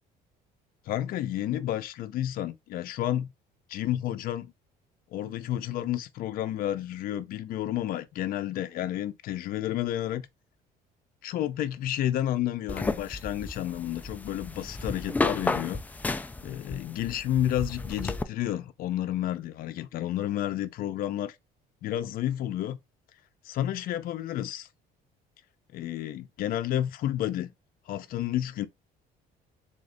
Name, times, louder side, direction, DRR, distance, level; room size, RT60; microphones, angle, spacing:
voice 1, 0.9-3.3 3.7-4.5 5.1-10.2 11.2-15.8 16.4-21.4 21.8-22.8 23.4-24.7 25.7-27.5 27.9-28.7, left 12 dB, 60° left, 0.6 m, -31 dB
sound 1, 12.7-18.2, left 3 dB, 10° left, 0.3 m, -33 dB
3.6 x 3.2 x 3.8 m
cardioid pair, 140°, 17 cm